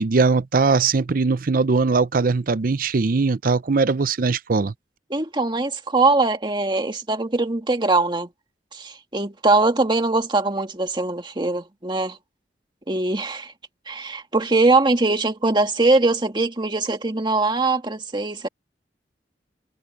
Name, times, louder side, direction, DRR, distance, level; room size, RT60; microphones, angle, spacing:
voice 1, 0.0-4.7, right 4 dB, 55° right, 0.6 m, -20 dB
voice 2, 5.1-8.3 8.7-12.2 12.9-13.5 13.9-18.5, right 3 dB, 25° right, 1.9 m, -21 dB
head